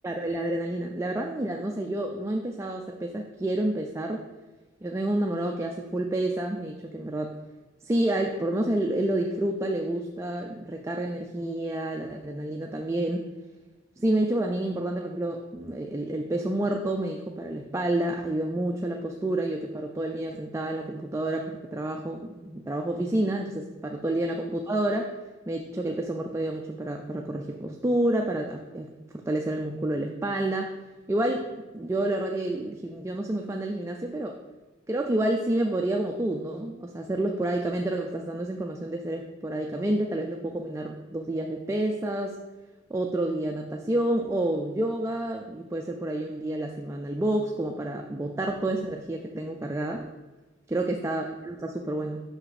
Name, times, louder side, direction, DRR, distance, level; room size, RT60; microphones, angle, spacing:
voice 1, 0.0-4.2 4.8-7.4 7.8-13.3 14.0-25.1 25.5-30.7 31.1-31.5 31.7-34.4 34.9-42.4 42.9-50.1 50.7-52.2, right 1 dB, 15° right, 2 dB, 0.3 m, -29 dB
5.8 x 5.7 x 4.0 m, 1.2 s
head